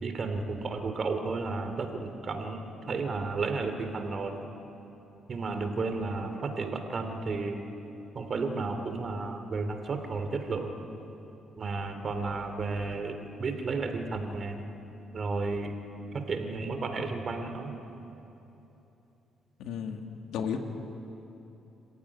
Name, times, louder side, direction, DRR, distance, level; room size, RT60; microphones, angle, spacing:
voice 1, 0.0-4.3 5.3-7.7 8.1-10.7 11.6-14.6 15.1-15.8 16.1-17.7, right 3 dB, 45° right, 6 dB, 2.8 m, -33 dB
voice 2, 19.6-20.1 20.3-20.6, left 7 dB, 85° left, 4 dB, 2.1 m, -33 dB
26.0 x 15.0 x 9.7 m, 3.0 s
cardioid pair, 90°, 0 cm